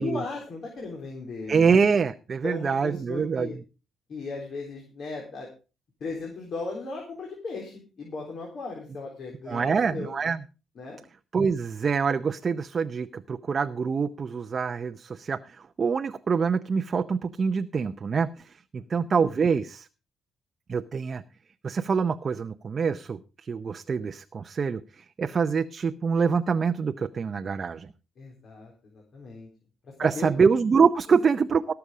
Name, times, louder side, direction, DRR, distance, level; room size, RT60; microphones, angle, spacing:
voice 1, 0.0-1.7 2.4-3.6 4.1-5.5 6.0-10.1 10.8-11.0 18.8-19.1 28.2-29.5 30.0-30.3, left 3 dB, 60° left, -1 dB, 3.9 m, -36 dB
voice 2, 1.5-3.5 9.5-10.4 11.3-15.4 15.8-18.3 18.7-19.9 20.7-21.2 21.6-24.8 25.2-27.9 30.0-31.7, right 5 dB, 40° right, 8 dB, 0.6 m, -25 dB
17.5 x 7.0 x 4.9 m, 0.33 s
cardioid pair, 90°, 0 cm